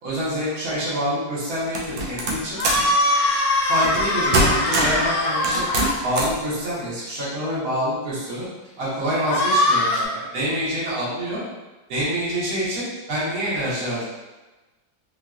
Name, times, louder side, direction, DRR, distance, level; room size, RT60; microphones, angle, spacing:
voice 1, 0.0-2.6 3.7-5.7 6.0-8.5 8.8-11.4 11.9-14.0, equal, 50° right, -9 dB, 1.4 m, -26 dB
sound 1, 1.7-2.9 3.8-4.1 4.3-5.1 5.4-6.4, right 2 dB, 75° right, 1.2 m, -23 dB
sound 2, 2.5-6.0 9.2-10.0, left 1 dB, 75° left, 0.8 m, -21 dB
3.7 x 2.8 x 2.4 m, 1.1 s
omnidirectional pair, 2.1 m